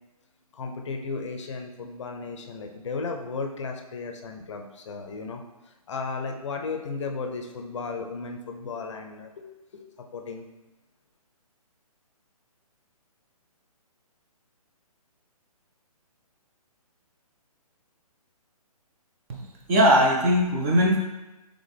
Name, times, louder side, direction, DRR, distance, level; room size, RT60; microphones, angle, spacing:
voice 1, 0.5-9.8 10.1-10.5, left 4 dB, 50° left, 3 dB, 0.5 m, -35 dB
voice 2, 19.7-21.0, equal, 20° right, -2 dB, 0.5 m, -20 dB
3.7 x 3.4 x 3.4 m, 1.0 s
hypercardioid pair, 145°, 19 cm